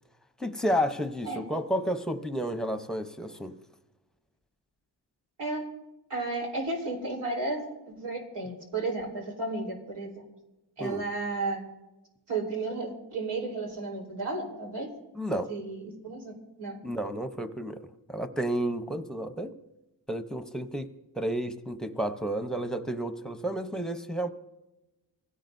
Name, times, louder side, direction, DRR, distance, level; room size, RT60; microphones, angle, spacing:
voice 1, 0.4-3.6 10.8-11.0 15.1-15.5 16.8-17.8 18.1-19.5 20.1-20.9 21.1-24.3, equal, ahead, 7 dB, 0.8 m, -31 dB
voice 2, 6.1-10.1 10.8-11.6 12.3-14.9 15.5-16.8, right 3 dB, 90° right, 0 dB, 4.2 m, -33 dB
25.5 x 16.5 x 2.7 m, 1.0 s
wide cardioid pair, 120°, 41 cm